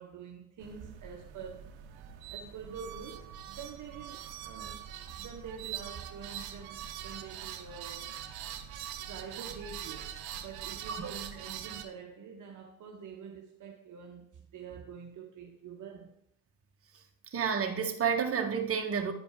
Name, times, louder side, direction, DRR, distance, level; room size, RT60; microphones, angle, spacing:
voice 1, 0.0-1.8 2.3-4.9 5.1-8.2 9.1-16.1, right 6 dB, 50° right, 1.2 m, -46 dB
sound 1, 0.6-11.9, right 10 dB, 70° right, 0.9 m, -43 dB
voice 2, 17.3-19.1, right 6 dB, 35° right, 1.5 m, -30 dB
9.9 x 5.1 x 4.9 m
hypercardioid pair, 65°, 39 cm